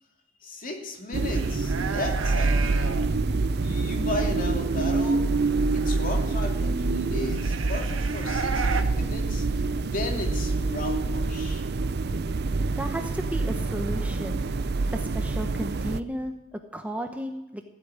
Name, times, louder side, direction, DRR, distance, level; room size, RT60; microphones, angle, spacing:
voice 1, 0.4-3.0 3.6-5.3 5.7-11.6, left 2 dB, 40° left, 2 dB, 2.7 m, -35 dB
sound 1, 1.1-16.0, right 3 dB, 55° right, 0.5 m, -26 dB
sound 2, 1.4-3.1 3.6-4.1 5.3-6.4 7.2-8.8, right 5 dB, 75° right, 1.3 m, -34 dB
voice 2, 12.8-14.5 14.9-17.6, equal, 5° right, 5 dB, 0.8 m, -34 dB
16.0 x 8.3 x 9.5 m, 0.97 s
head